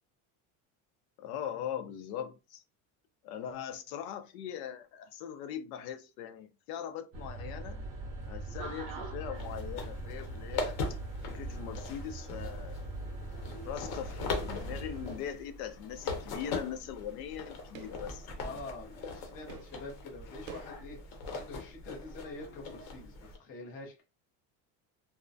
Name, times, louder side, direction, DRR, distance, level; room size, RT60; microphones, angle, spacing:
voice 1, 1.2-2.6 3.2-7.8 8.3-10.8 11.3-12.9 13.6-18.3, left 9 dB, 90° left, 0.6 m, -41 dB
sound 1, 7.1-15.2, right 2 dB, 35° right, 0.5 m, -41 dB
sound 2, 9.3-23.4, left 3 dB, 55° left, 0.8 m, -41 dB
sound 3, 15.6-20.9, right 6 dB, 75° right, 0.7 m, -53 dB
voice 2, 18.4-24.0, left 3 dB, 20° left, 0.4 m, -46 dB
2.3 x 2.1 x 2.5 m
cardioid pair, 165°, 43 cm